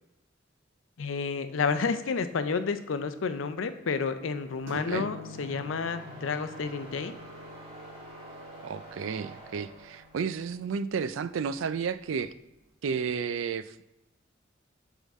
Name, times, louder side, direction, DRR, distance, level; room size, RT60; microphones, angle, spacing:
voice 1, 1.0-7.2, left 5 dB, 85° left, 11 dB, 0.5 m, -30 dB
sound 1, 3.7-10.6, right 1 dB, 30° right, 1.7 m, -48 dB
sound 2, 4.7-12.2, left 3 dB, 70° right, 1.5 m, -48 dB
voice 2, 4.7-5.1 8.6-12.3 12.8-13.7, right 6 dB, 90° right, 13 dB, 0.4 m, -32 dB
7.0 x 3.7 x 4.2 m, 0.94 s
head